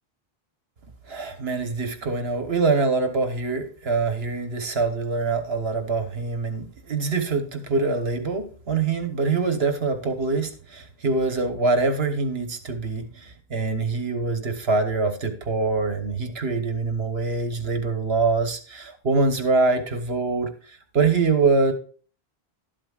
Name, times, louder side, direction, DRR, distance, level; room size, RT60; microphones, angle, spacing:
voice 1, 1.1-21.7, right 3 dB, 75° right, 7 dB, 1.4 m, -24 dB
12.5 x 12.0 x 2.4 m, 0.42 s
omnidirectional pair, 1.0 m